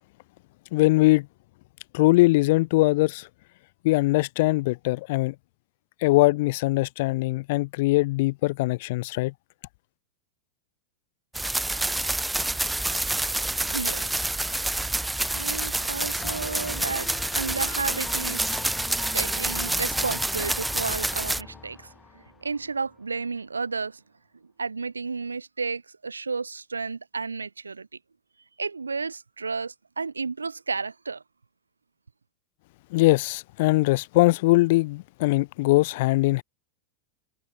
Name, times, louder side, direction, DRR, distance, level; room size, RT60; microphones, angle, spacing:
voice 1, 0.7-1.3 1.9-3.3 3.8-5.3 6.0-9.3 32.9-36.4, left 21 dB, 55° left, 6.1 m, -21 dB
sound 1, 11.3-21.4, right 2 dB, 5° right, 3.8 m, -28 dB
voice 2, 13.7-14.1 14.4-14.7 15.3-18.7 19.1-24.0 24.6-27.9 28.6-31.2, right 4 dB, 85° right, 3.4 m, -32 dB
sound 2, 16.2-23.0, left 5 dB, 20° left, 6.9 m, -42 dB
figure-of-eight pair, 90°, 0 cm